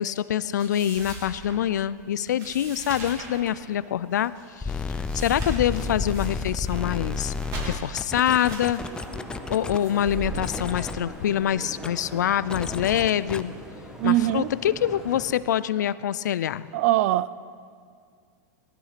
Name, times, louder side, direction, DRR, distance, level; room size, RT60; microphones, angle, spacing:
voice 1, 0.0-7.3 7.6-8.8 9.5-13.6 14.0-16.7, left 10 dB, 85° left, 17 dB, 0.5 m, -25 dB
sound 1, 0.6-11.5, right 3 dB, 35° right, 3.8 m, -40 dB
sound 2, 4.6-9.8 10.4-11.0 11.8-11.9 12.5-13.4, left 4 dB, 10° left, 0.4 m, -31 dB
sound 3, 8.8-15.3, right 1 dB, 5° right, 1.8 m, -41 dB
voice 2, 14.0-14.5 16.7-17.3, right 15 dB, 55° right, 18 dB, 0.5 m, -22 dB
18.5 x 13.0 x 5.9 m, 2.2 s
hypercardioid pair, 135°, 9 cm